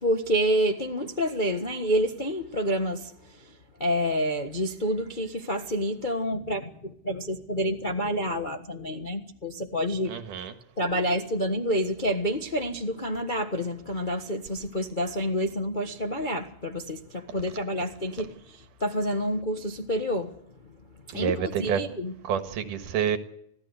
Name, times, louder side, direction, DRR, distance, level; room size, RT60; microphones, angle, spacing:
voice 1, 0.0-3.5 3.8-10.1 10.8-20.4 21.1-22.1, equal, 60° left, 0.5 m, -28 dB
voice 2, 10.1-10.5 21.1-21.8 22.3-23.2, right 8 dB, 85° right, 3.2 m, -28 dB
26.0 x 16.5 x 8.2 m
omnidirectional pair, 3.6 m